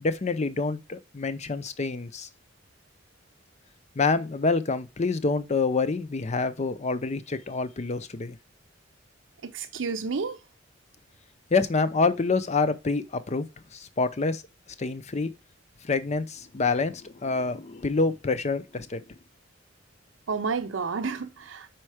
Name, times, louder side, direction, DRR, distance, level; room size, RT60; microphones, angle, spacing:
voice 1, 0.0-2.3 3.9-8.4 11.5-13.5 13.7-14.4 14.8-15.3 15.8-19.0, left 4 dB, 35° left, 0.6 m, -27 dB
voice 2, 9.4-10.4 20.3-21.7, right 5 dB, 80° right, 0.6 m, -30 dB
5.4 x 4.5 x 4.8 m
head